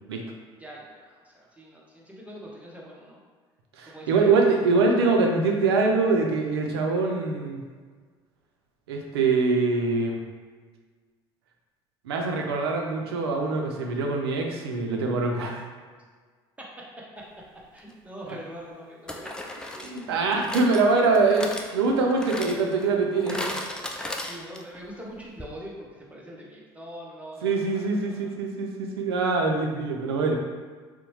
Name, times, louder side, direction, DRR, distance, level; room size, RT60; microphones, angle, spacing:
voice 1, 0.6-3.2 3.8-4.3 17.7-20.4 24.1-28.3, equal, 10° right, -4 dB, 0.7 m, -43 dB
voice 2, 3.8-7.6 8.9-10.2 12.0-15.6 19.8-23.4 27.4-30.4, right 3 dB, 90° right, 2 dB, 0.4 m, -24 dB
sound 1, 17.8-17.9 19.1-24.8 25.1-25.2 25.4-25.5, left 1 dB, 5° left, 0.3 m, -36 dB
2.7 x 2.0 x 2.9 m, 1.5 s
hypercardioid pair, 75°, 13 cm